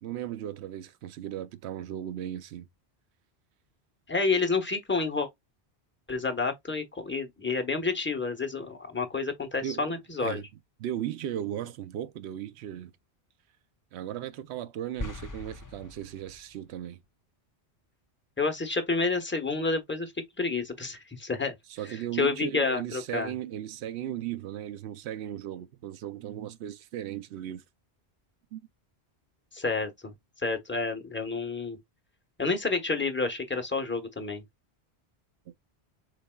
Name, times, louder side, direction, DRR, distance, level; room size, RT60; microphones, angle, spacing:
voice 1, 0.0-2.7 9.6-9.9 10.2-10.5 10.8-12.9 13.9-17.0 21.7-27.6 28.5-28.7 35.5-35.6, right 11 dB, 80° right, 0.8 m, -36 dB
voice 2, 4.1-5.3 6.1-10.4 18.4-20.1 20.4-21.5 22.2-23.3 29.5-30.1 30.4-31.8 32.4-34.4, left 4 dB, 10° left, 0.8 m, -29 dB
sound 1, 15.0-16.6, left 2 dB, 30° left, 0.3 m, -40 dB
4.9 x 4.1 x 2.2 m
omnidirectional pair, 1.1 m